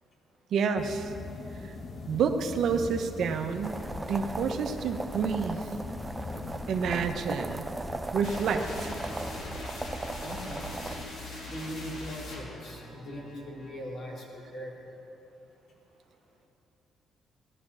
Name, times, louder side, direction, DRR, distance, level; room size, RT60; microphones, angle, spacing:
voice 1, 0.5-1.1 1.6-1.8 2.1-3.8 4.1-5.7 6.7-7.7 8.1-8.9, right 6 dB, 70° right, 6 dB, 1.1 m, -29 dB
sound 1, 0.8-9.6, left 4 dB, 45° left, 1.2 m, -42 dB
sound 2, 3.6-11.0, right 2 dB, 15° right, 0.8 m, -38 dB
sound 3, 8.2-13.8, left 2 dB, 85° left, 3.7 m, -42 dB
voice 2, 10.0-11.0 11.4-14.8, equal, 60° left, -3 dB, 3.8 m, -41 dB
17.0 x 12.0 x 6.4 m, 2.9 s
cardioid pair, 90°, 0 cm